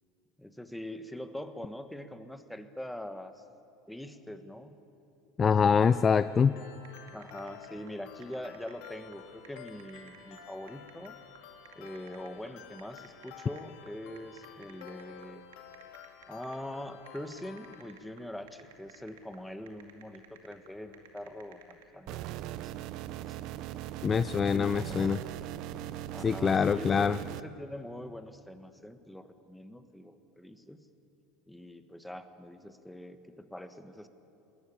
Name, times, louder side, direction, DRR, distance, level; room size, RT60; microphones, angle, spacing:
voice 1, 0.4-3.4 3.9-4.8 7.1-11.2 11.7-15.4 16.3-22.3 22.6-23.4 24.5-25.1 26.1-30.9 31.5-34.1, left 1 dB, 5° left, 9 dB, 1.3 m, -43 dB
voice 2, 5.4-6.5 24.0-25.2 26.2-27.2, left 6 dB, 30° left, 14 dB, 0.4 m, -24 dB
sound 1, 5.8-17.8, left 7 dB, 65° left, 2.3 m, -51 dB
sound 2, 6.7-21.8, right 7 dB, 85° right, 2.4 m, -57 dB
sound 3, 22.1-27.4, right 12 dB, 60° right, 0.6 m, -39 dB
20.0 x 14.5 x 9.9 m, 2.9 s
supercardioid pair, 100°, 0 cm